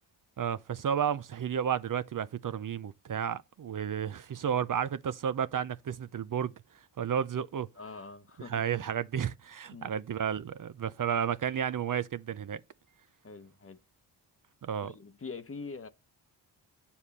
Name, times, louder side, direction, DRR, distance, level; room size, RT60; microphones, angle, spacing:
voice 1, 0.4-6.5 7.0-7.7 8.5-12.6 14.6-14.9, right 8 dB, 45° right, 0.6 m, -32 dB
voice 2, 7.8-8.6 9.7-9.9 13.2-13.8 14.8-15.9, left 4 dB, 30° left, 1.0 m, -44 dB
8.2 x 7.1 x 4.2 m
cardioid pair, 60°, 43 cm